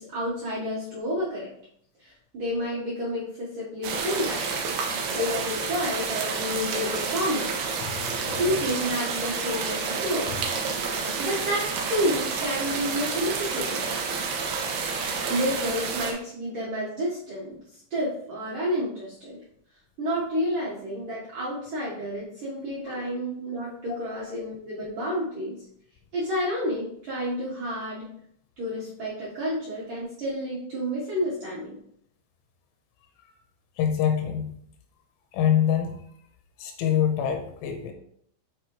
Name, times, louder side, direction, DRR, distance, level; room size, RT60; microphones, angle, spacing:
voice 1, 0.0-1.5 2.0-4.5 5.1-7.6 8.3-10.5 11.2-13.8 15.3-17.6 17.9-19.4 20.0-25.6 26.1-28.1 28.6-31.8, equal, 70° right, -7 dB, 1.9 m, -30 dB
sound 1, 3.8-16.1, right 5 dB, 85° right, 2.0 m, -29 dB
voice 2, 7.8-8.5 10.3-10.4 22.9-23.0 33.2-33.3 33.8-34.6 35.3-36.1 36.6-37.9, left 9 dB, 85° left, 5 dB, 3.1 m, -26 dB
9.4 x 4.1 x 3.1 m, 0.68 s
omnidirectional pair, 5.7 m